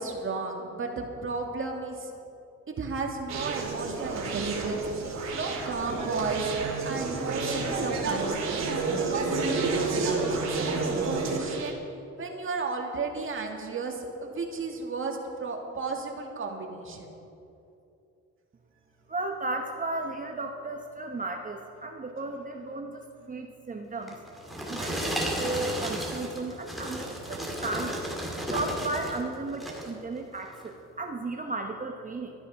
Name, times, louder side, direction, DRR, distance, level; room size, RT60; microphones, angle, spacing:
voice 1, 0.0-2.1 2.7-8.6 9.0-11.8 12.2-17.1, right 4 dB, 45° right, 2 dB, 2.0 m, -34 dB
Conversation, 3.3-11.7, right 3 dB, 60° right, 2.8 m, -30 dB
voice 2, 19.1-23.0 23.3-24.1 24.7-28.0 28.5-32.3, right 2 dB, 25° right, 3 dB, 0.9 m, -34 dB
sound 1, 24.1-29.2 29.5-30.0 30.5-30.7, right 1 dB, ahead, 2.7 m, -33 dB
13.0 x 11.0 x 5.7 m, 2.7 s
cardioid pair, 90°, 30 cm